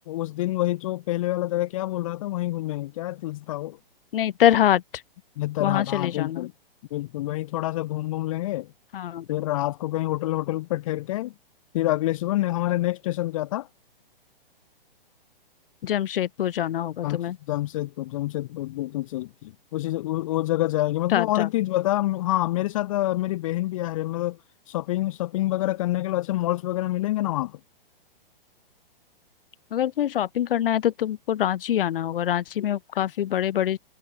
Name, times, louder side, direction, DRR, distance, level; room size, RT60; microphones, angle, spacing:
voice 1, 0.1-3.8 5.4-6.5 6.9-8.7 9.3-11.3 11.7-13.7 17.0-17.2 17.5-24.4 24.7-27.6, left 16 dB, 35° left, 0.7 m, -27 dB
voice 2, 4.1-4.8 5.6-6.5 8.9-9.2 15.8-17.4 21.1-21.5 29.7-33.8, left 11 dB, 70° left, 0.6 m, -24 dB
hypercardioid pair, 150°, 29 cm